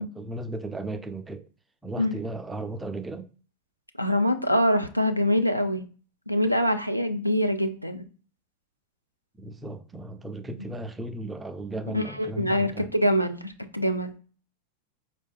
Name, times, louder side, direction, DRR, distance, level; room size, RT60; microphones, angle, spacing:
voice 1, 0.0-1.5 1.8-3.3 9.4-12.9, right 2 dB, 10° right, 0.3 m, -36 dB
voice 2, 4.0-5.8 6.3-8.0 11.9-14.1, equal, 90° left, 0.3 m, -24 dB
4.5 x 2.2 x 2.3 m
figure-of-eight pair, 90°, 0 cm